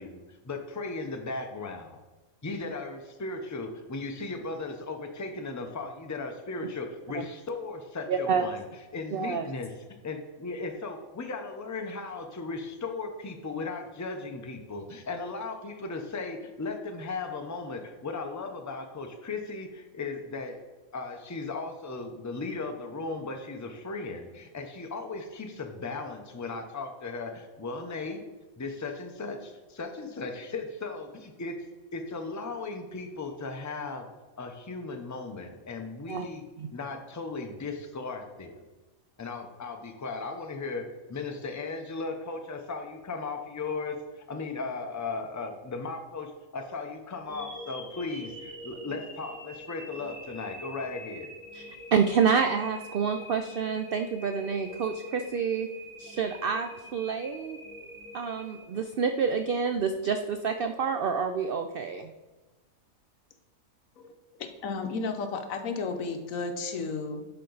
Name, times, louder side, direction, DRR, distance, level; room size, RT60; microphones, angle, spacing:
voice 1, 0.0-2.0 2.4-8.6 8.9-9.7 10.0-20.6 20.9-28.2 28.6-31.6 31.9-34.1 34.4-36.4 36.7-38.6 39.2-51.3, left 3 dB, 20° left, 4 dB, 0.5 m, -36 dB
voice 2, 8.1-8.5 9.1-9.5 36.1-36.3 36.6-36.7 51.5-55.7 56.0-57.6 58.1-62.1, right 6 dB, 75° right, 7 dB, 0.5 m, -28 dB
sound 1, 47.2-59.4, equal, 30° right, 2.9 m, -45 dB
voice 3, 64.4-67.2, left 4 dB, 70° left, 6 dB, 1.2 m, -33 dB
11.5 x 4.4 x 4.0 m, 1.2 s
omnidirectional pair, 1.5 m